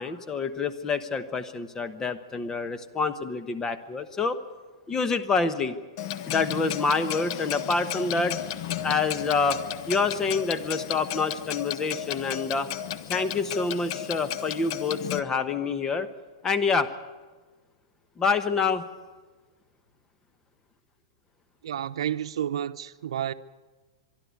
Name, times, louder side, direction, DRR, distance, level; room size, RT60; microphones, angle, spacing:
voice 1, 0.0-4.4 4.9-5.8 6.3-8.4 8.8-9.6 9.9-12.7 13.1-16.1 16.4-16.9 18.2-18.8, left 4 dB, 15° left, 1.1 m, -27 dB
Clock, 6.0-15.2, left 11 dB, 50° left, 0.9 m, -34 dB
voice 2, 21.6-23.3, right 10 dB, 85° right, 0.8 m, -30 dB
24.0 x 12.0 x 9.6 m
supercardioid pair, 145°, 3 cm